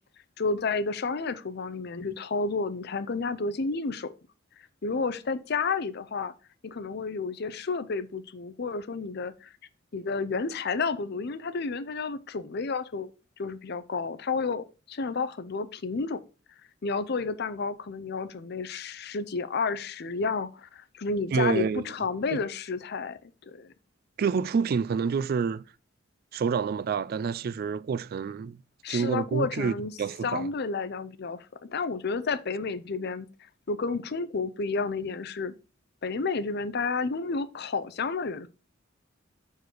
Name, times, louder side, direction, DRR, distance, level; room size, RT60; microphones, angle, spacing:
voice 1, 0.4-4.1 4.8-6.3 6.6-9.5 9.9-13.1 13.4-16.2 16.8-23.2 23.5-23.7 28.8-29.9 30.2-33.3 33.7-35.5 36.0-38.5, left 4 dB, 55° left, 0.6 m, -31 dB
voice 2, 21.3-21.9 22.3-22.4 24.2-25.6 26.3-28.6 28.9-30.5, right 6 dB, 50° right, 0.3 m, -28 dB
6.5 x 4.7 x 4.4 m
head